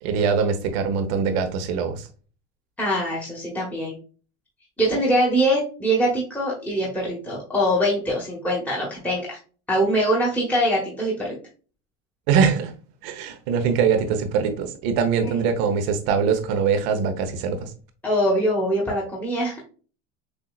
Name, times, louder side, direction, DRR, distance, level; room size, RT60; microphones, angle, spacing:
voice 1, 0.0-2.1 12.3-12.7 13.0-17.7, right 6 dB, 75° right, 1.1 m, -22 dB
voice 2, 2.8-3.9 4.8-9.4 9.7-11.4 18.0-19.6, equal, 5° left, 1.4 m, -23 dB
6.8 x 2.7 x 2.4 m
supercardioid pair, 130°, 32 cm